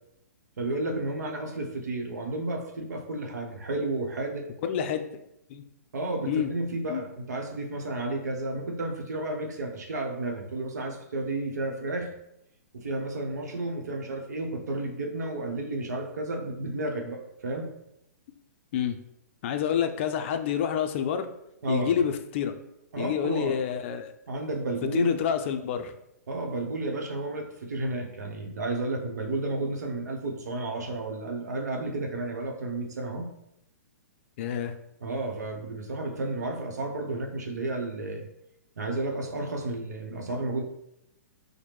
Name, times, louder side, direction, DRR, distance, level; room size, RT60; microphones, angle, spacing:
voice 1, 0.6-4.5 5.9-12.1 12.7-17.7 21.6-21.9 22.9-23.6 24.3-25.2 26.3-33.3 35.0-38.3 38.8-40.6, right 2 dB, 75° right, 2 dB, 0.8 m, -32 dB
voice 2, 4.6-5.0 5.5-5.6 6.3-6.5 6.9-7.0 18.7-19.0 19.4-21.3 21.7-22.5 23.0-24.1 24.8-25.9 34.4-34.7, left 8 dB, 45° left, 8 dB, 0.4 m, -28 dB
4.8 x 2.1 x 3.0 m, 0.81 s
hypercardioid pair, 130°, 9 cm